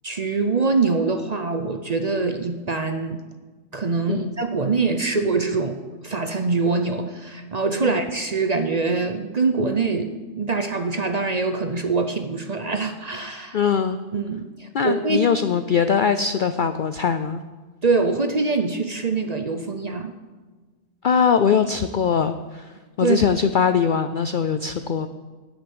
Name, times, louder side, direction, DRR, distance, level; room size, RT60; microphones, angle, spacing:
voice 1, 0.0-3.2 3.7-13.6 14.1-15.3 17.8-20.1 23.0-23.2, right 4 dB, 40° right, 7 dB, 0.6 m, -24 dB
voice 2, 13.5-14.0 14.7-17.4 21.0-22.7 23.0-25.1, left 7 dB, 85° left, 10 dB, 0.4 m, -21 dB
12.5 x 6.5 x 8.8 m, 1.3 s
omnidirectional pair, 1.5 m